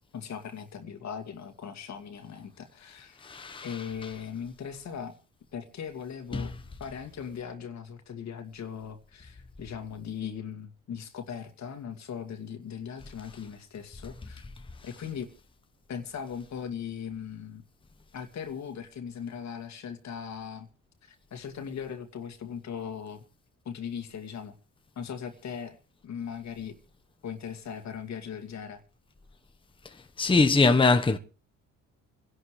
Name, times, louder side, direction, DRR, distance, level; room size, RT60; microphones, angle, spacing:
voice 1, 0.1-3.3 3.6-5.1 5.5-6.5 6.8-14.4 14.8-15.3 15.9-17.6 18.1-20.7 21.0-23.2 23.6-24.5 25.0-25.8 26.0-26.8 27.2-28.8, left 7 dB, 65° left, 2.4 m, -39 dB
voice 2, 3.2-3.7 6.3-6.4 30.2-31.2, left 3 dB, 15° left, 1.1 m, -22 dB
28.5 x 11.5 x 3.3 m
cardioid pair, 90°, 30 cm